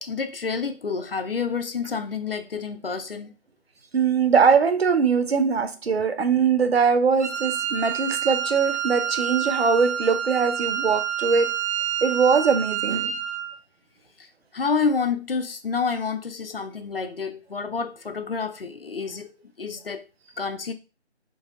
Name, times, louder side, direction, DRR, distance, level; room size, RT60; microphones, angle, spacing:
voice 1, 0.0-3.4 14.2-14.3 14.5-20.0 20.4-20.7, left 5 dB, 55° left, 0.4 m, -29 dB
voice 2, 3.9-11.5 12.0-13.1, right 5 dB, 65° right, 0.6 m, -21 dB
Wind instrument woodwind instrument, 7.2-13.5, right 9 dB, 90° right, 1.0 m, -28 dB
3.9 x 2.7 x 2.4 m
figure-of-eight pair, 165°, 34 cm